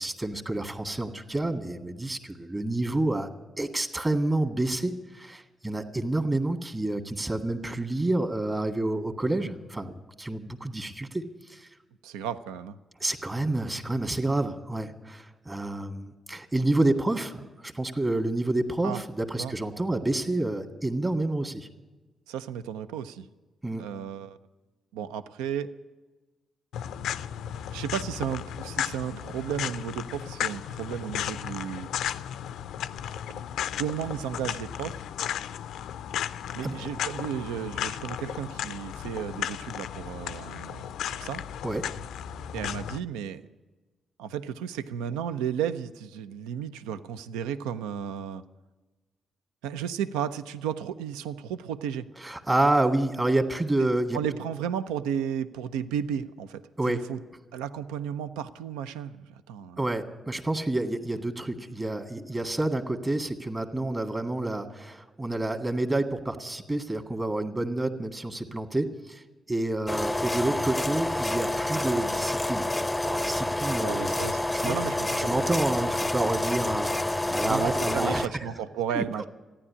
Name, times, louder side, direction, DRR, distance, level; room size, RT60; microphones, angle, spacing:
voice 1, 0.0-3.3 3.6-11.2 11.5-11.7 13.0-21.7 23.6-23.9 36.4-36.7 41.6-41.8 52.2-54.2 56.8-57.0 59.8-69.2 69.5-72.7 73.0-74.1 74.6-74.8 75.3-78.5 78.9-79.0, right 2 dB, 25° right, 5 dB, 1.9 m, -29 dB
voice 2, 12.0-12.8 18.8-19.0 19.4-19.6 22.3-23.3 23.8-24.4 24.9-25.7 27.7-32.0 33.3-33.4 33.8-35.0 36.6-41.4 42.5-43.5 44.2-48.4 49.6-52.1 53.8-53.9 54.1-57.2 57.5-59.8 73.8-75.4 77.4-79.2, right 8 dB, 90° right, 11 dB, 0.5 m, -33 dB
sound 1, 26.7-43.0, left 10 dB, 80° left, 0.4 m, -35 dB
sound 2, 69.9-78.3, left 1 dB, 15° left, 0.6 m, -28 dB
14.5 x 10.0 x 9.7 m, 1.2 s
hypercardioid pair, 45°, 0 cm